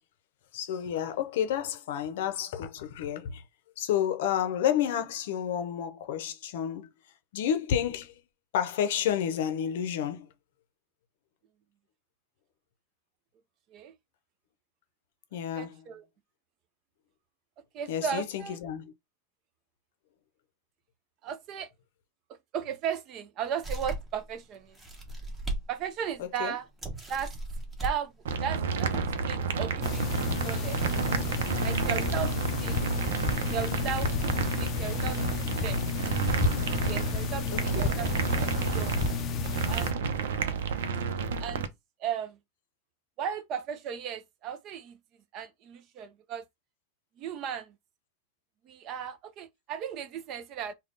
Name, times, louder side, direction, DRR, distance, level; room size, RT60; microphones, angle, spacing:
voice 1, 0.5-3.4 3.8-6.9 7.3-8.2 8.5-10.3 15.3-15.9 17.9-18.9 26.2-26.5 37.5-38.0, left 9 dB, 65° left, 0.7 m, -30 dB
voice 2, 15.5-16.0 17.7-18.6 21.2-21.7 22.5-24.8 25.7-26.7 27.1-27.3 27.8-28.1 28.4-30.1 30.4-30.8 31.6-32.8 33.5-35.8 36.8-38.1 38.4-39.0 39.7-40.0 41.4-41.7 42.0-42.4 43.2-45.0 45.3-46.4 47.2-47.8 48.6-50.7, right 8 dB, 35° right, 0.5 m, -36 dB
sound 1, 23.6-24.2 24.7-25.6 26.0-26.1 26.8-28.0 28.7-29.1, right 2 dB, 10° right, 1.0 m, -36 dB
sound 2, 28.3-41.7, right 5 dB, 85° right, 0.6 m, -31 dB
sound 3, 29.8-39.9, left 4 dB, 25° left, 0.5 m, -31 dB
3.5 x 2.2 x 3.8 m
supercardioid pair, 160°, 0 cm